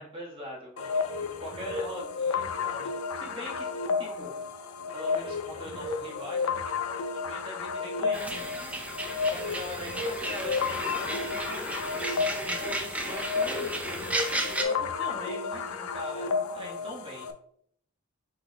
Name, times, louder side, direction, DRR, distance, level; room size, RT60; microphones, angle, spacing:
voice 1, 0.0-3.7 4.0-4.3 4.9-6.8 7.1-8.8 9.3-17.3, left 1 dB, 25° right, -3 dB, 1.4 m, -42 dB
sound 1, 0.8-17.3, left 5 dB, 75° left, 0.5 m, -32 dB
sound 2, 8.1-14.6, right 1 dB, 5° right, 0.5 m, -34 dB
5.8 x 4.1 x 2.2 m, 0.66 s
head